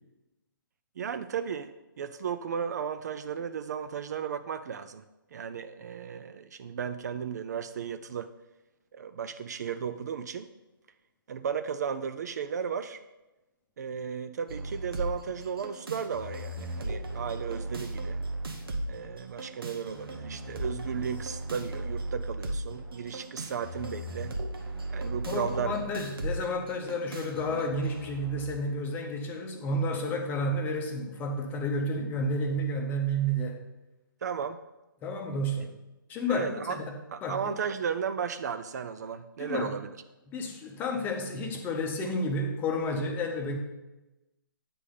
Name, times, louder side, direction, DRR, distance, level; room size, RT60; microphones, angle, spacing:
voice 1, 1.0-5.0 5.3-8.3 8.9-10.5 11.3-13.0 13.8-18.2 18.9-24.4 24.9-25.8 34.2-34.6 36.3-36.8 37.1-39.9, right 7 dB, 50° right, 10 dB, 0.4 m, -35 dB
sound 1, 14.5-28.5, right 1 dB, 80° right, 1.1 m, -37 dB
voice 2, 25.2-33.6 35.0-35.7 36.1-36.9 37.2-37.5 39.4-39.7 40.3-43.6, equal, 15° left, 2 dB, 0.7 m, -31 dB
8.4 x 3.4 x 5.5 m, 1.0 s
figure-of-eight pair, 145°, 12 cm